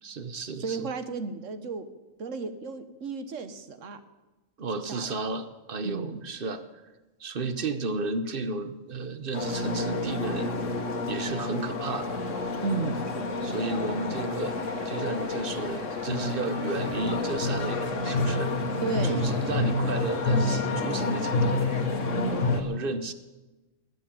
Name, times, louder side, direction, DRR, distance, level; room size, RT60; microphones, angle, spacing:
voice 1, 0.0-0.9 4.6-6.6 7.2-10.5 11.1-12.2 13.4-14.6 14.8-18.5 19.0-21.9 22.5-23.1, right 3 dB, 45° right, 11 dB, 1.0 m, -33 dB
voice 2, 0.6-1.9 2.2-4.0 4.7-5.1 5.8-6.2 12.6-13.0 18.8-19.2 22.1-22.5, right 4 dB, 65° right, 10 dB, 1.4 m, -33 dB
sound 1, 9.3-22.6, left 3 dB, 65° left, 1.7 m, -29 dB
20.0 x 6.9 x 8.9 m, 1.1 s
omnidirectional pair, 1.4 m